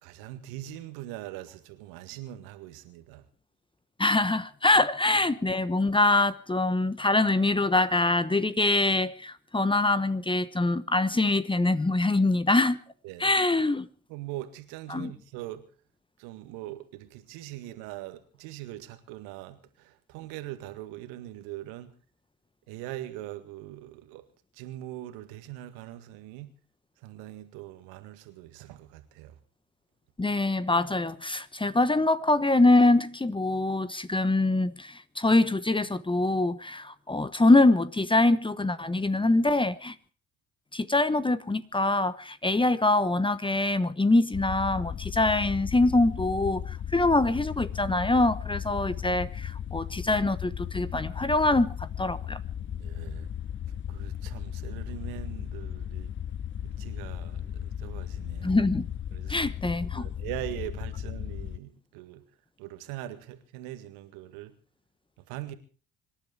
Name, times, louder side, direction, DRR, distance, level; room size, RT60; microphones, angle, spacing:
voice 1, 0.0-3.3 13.0-13.3 14.1-15.6 16.2-21.9 22.7-24.3 24.5-26.5 27.0-29.4 52.7-53.3 53.9-56.1 56.6-58.6 59.1-59.5 60.0-62.2 62.6-64.5 65.3-65.5, right 14 dB, 70° right, 1.9 m, -41 dB
voice 2, 4.0-12.8 13.2-13.9 14.9-15.1 30.2-39.9 40.7-52.4 58.4-58.9 59.3-60.0, left 2 dB, 15° left, 1.1 m, -24 dB
sound 1, 44.3-61.6, left 9 dB, 30° left, 0.7 m, -36 dB
25.5 x 11.5 x 4.9 m
figure-of-eight pair, 50°, 37 cm